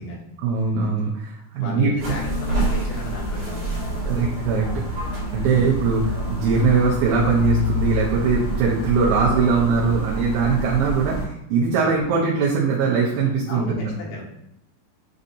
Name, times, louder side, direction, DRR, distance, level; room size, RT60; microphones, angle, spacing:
voice 1, 0.4-1.9 4.1-5.1 5.3-13.9, right 4 dB, 80° right, -4 dB, 2.4 m, -21 dB
voice 2, 1.5-4.2 5.4-5.7 9.0-9.2 11.8-12.0 13.5-14.2, left 1 dB, 70° left, -4 dB, 2.7 m, -34 dB
sound 1, 2.0-11.2, equal, 60° right, 2.2 m, -27 dB
7.5 x 2.6 x 2.7 m, 0.79 s
omnidirectional pair, 4.2 m